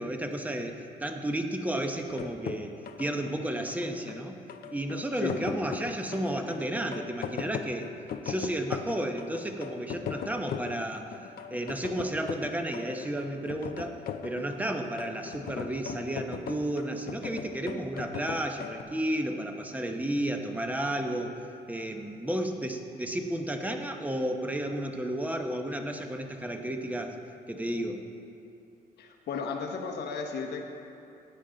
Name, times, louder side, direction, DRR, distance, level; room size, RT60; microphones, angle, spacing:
voice 1, 0.0-4.4 4.7-7.9 8.2-14.0 14.2-21.4 21.7-27.2 27.5-28.0, right 1 dB, 10° right, 4 dB, 0.9 m, -32 dB
sound 1, 2.1-18.8, left 8 dB, 65° left, 0.6 m, -39 dB
voice 2, 5.1-5.4 29.0-30.6, left 5 dB, 85° left, 3 dB, 1.2 m, -34 dB
15.0 x 8.9 x 3.9 m, 2.7 s
cardioid pair, 130°, 17 cm